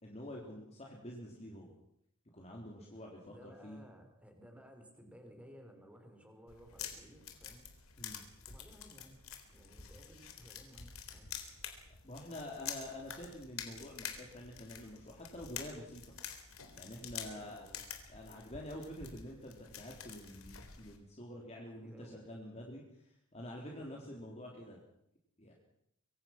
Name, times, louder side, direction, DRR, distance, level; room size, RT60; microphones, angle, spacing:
voice 1, 0.0-1.7 2.3-3.8 8.0-8.3 12.0-16.1 16.7-17.7 18.1-24.8 25.4-25.5, left 1 dB, 30° left, -2 dB, 3.9 m, -47 dB
voice 2, 3.0-7.7 8.5-9.2 9.5-11.3 17.3-17.9 21.7-22.2 23.8-24.5, equal, 5° right, 4 dB, 4.6 m, -58 dB
sound 1, 6.5-21.0, left 8 dB, 75° left, 3.8 m, -48 dB
25.0 x 24.5 x 6.2 m, 0.74 s
head